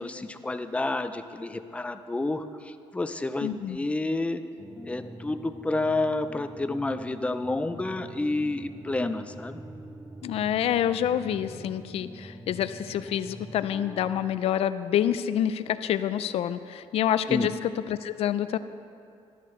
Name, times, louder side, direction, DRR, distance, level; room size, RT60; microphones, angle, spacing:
voice 1, 0.0-4.4 4.8-9.6 17.3-17.5, left 2 dB, 10° left, 10 dB, 0.4 m, -30 dB
voice 2, 3.4-3.8 10.2-18.6, left 10 dB, 70° left, 13 dB, 0.4 m, -27 dB
sound 1, 4.6-14.4, right 1 dB, 5° right, 0.8 m, -45 dB
13.0 x 11.5 x 3.2 m, 2.5 s
cardioid pair, 125°, 10 cm